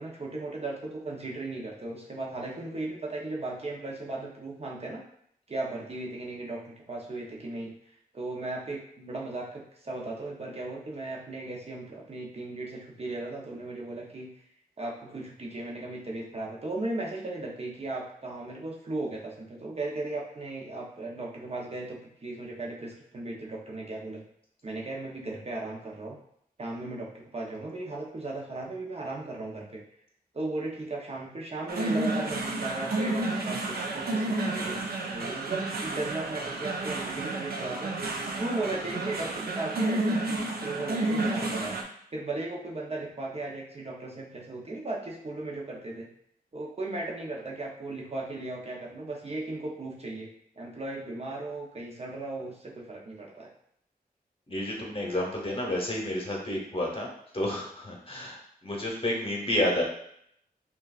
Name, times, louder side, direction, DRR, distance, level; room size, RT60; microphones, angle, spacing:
voice 1, 0.0-5.0 5.5-7.7 8.1-14.3 14.8-24.2 24.6-26.2 26.6-29.8 30.3-37.9 38.4-41.8 42.1-46.1 46.5-50.3 50.5-53.5, right 2 dB, 40° right, -2 dB, 0.7 m, -36 dB
sound 1, 31.7-41.8, right 2 dB, 80° right, 0.6 m, -31 dB
voice 2, 54.5-59.8, left 1 dB, 35° left, -1 dB, 0.9 m, -30 dB
5.5 x 2.4 x 2.4 m, 0.69 s
wide cardioid pair, 105°, 16 cm